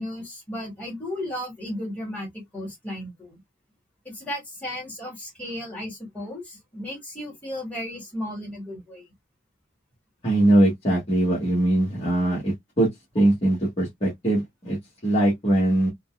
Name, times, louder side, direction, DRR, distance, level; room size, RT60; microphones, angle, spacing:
voice 1, 0.0-3.4 4.1-9.0, left 1 dB, 10° left, 1.8 m, -34 dB
voice 2, 10.2-12.9 13.1-14.8 15.0-15.9, right 1 dB, 30° left, 1.3 m, -21 dB
3.8 x 2.2 x 2.3 m
head